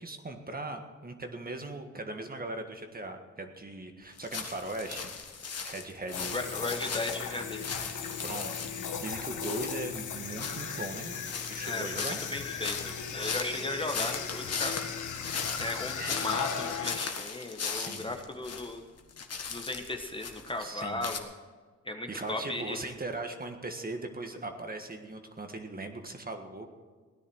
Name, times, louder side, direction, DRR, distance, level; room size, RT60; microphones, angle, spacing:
voice 1, 0.0-5.1 5.6-6.3 8.2-11.1 11.5-12.2 16.0-16.2 17.7-18.1 20.6-21.1 22.1-26.7, right 2 dB, 30° right, 5 dB, 1.7 m, -39 dB
sound 1, 4.2-9.0 9.4-18.7 19.0-21.2, left 5 dB, 55° left, 1.6 m, -38 dB
sound 2, 6.1-17.0, left 6 dB, 80° left, 1.3 m, -37 dB
voice 2, 6.3-7.8 11.6-14.8 15.6-18.8 19.5-21.3 21.8-22.8, left 2 dB, 15° left, 4 dB, 1.3 m, -36 dB
17.0 x 10.0 x 6.4 m, 1.4 s
cardioid pair, 75°, 30 cm